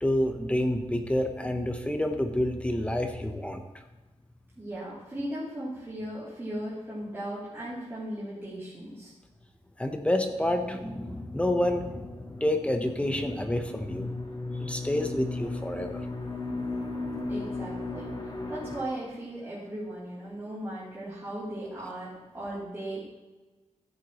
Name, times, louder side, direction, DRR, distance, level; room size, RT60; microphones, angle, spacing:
voice 1, 0.0-3.6 9.8-14.1 14.6-16.0, left 1 dB, 10° left, 5 dB, 0.9 m, -28 dB
voice 2, 4.6-9.1 17.3-23.0, right 1 dB, 20° right, -11 dB, 3.2 m, -37 dB
sound 1, 10.3-18.8, left 2 dB, 35° left, 1.8 m, -36 dB
14.5 x 7.9 x 3.1 m, 1.2 s
wide cardioid pair, 140°, 12 cm